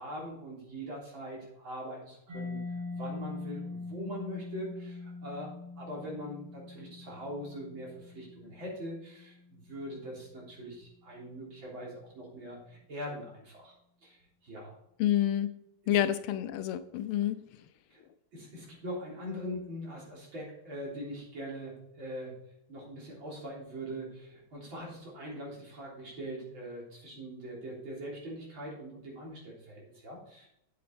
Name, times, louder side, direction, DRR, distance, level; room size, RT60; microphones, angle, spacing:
voice 1, 0.0-2.6 2.9-13.7 14.0-14.8 15.8-16.0 17.9-18.0 18.3-22.3 22.7-30.5, equal, 65° right, -4 dB, 4.2 m, -42 dB
Mallet percussion, 2.3-9.8, left 3 dB, 90° right, 3.0 m, -43 dB
voice 2, 15.0-15.5 15.9-17.4, left 11 dB, 80° left, 11 dB, 1.5 m, -28 dB
8.7 x 8.2 x 4.2 m, 0.80 s
omnidirectional pair, 2.4 m